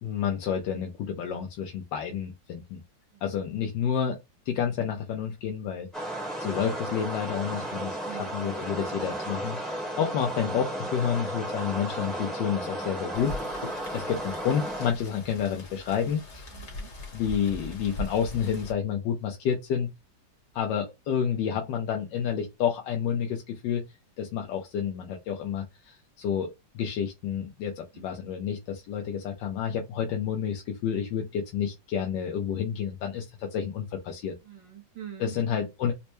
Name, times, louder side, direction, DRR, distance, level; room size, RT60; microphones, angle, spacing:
voice 1, 0.0-2.8 3.2-4.2 4.5-8.0 8.3-9.6 10.0-13.4 13.9-16.5 17.1-19.9 20.5-23.8 24.2-34.4 35.2-35.9, left 8 dB, 80° left, 1.3 m, -30 dB
voice 2, 3.1-3.5 8.0-8.5 11.5-11.8 16.5-16.9 27.9-28.2 34.4-35.4, right 9 dB, 75° right, 1.8 m, -46 dB
sound 1, 5.9-14.9, right 1 dB, ahead, 0.9 m, -34 dB
Rain, 13.1-18.7, left 1 dB, 40° left, 1.3 m, -40 dB
4.3 x 2.1 x 3.0 m
omnidirectional pair, 2.0 m